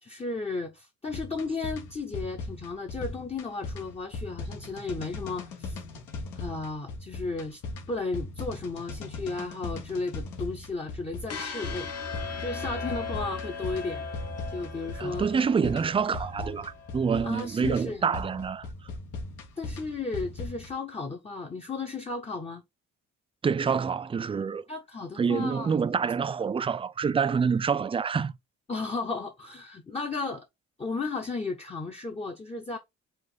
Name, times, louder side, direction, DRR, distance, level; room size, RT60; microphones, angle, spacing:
voice 1, 0.0-5.8 6.4-7.6 7.9-11.9 12.4-14.1 14.5-15.3 17.2-18.0 19.6-22.6 24.7-25.8 28.7-30.5 30.8-32.8, left 3 dB, 20° left, 0.7 m, -34 dB
sound 1, 1.1-20.7, left 3 dB, 80° left, 1.5 m, -39 dB
sound 2, 11.3-17.4, left 4 dB, 55° left, 1.2 m, -38 dB
voice 2, 15.0-18.7 23.4-24.6 25.2-28.3, right 6 dB, 20° right, 0.3 m, -27 dB
5.1 x 2.5 x 3.9 m
cardioid pair, 90°, 30 cm